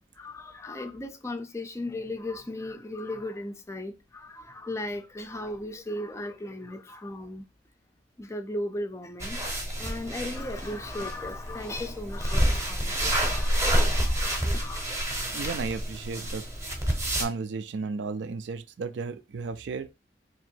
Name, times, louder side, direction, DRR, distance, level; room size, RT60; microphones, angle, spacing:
voice 1, 0.2-7.4 8.2-9.5 9.8-14.8, left 1 dB, 15° left, 0.4 m, -36 dB
sound 1, 9.2-17.2, right 1 dB, 15° right, 0.8 m, -28 dB
voice 2, 15.3-16.4 17.2-19.9, right 4 dB, 80° right, 0.4 m, -34 dB
2.9 x 2.6 x 4.4 m
head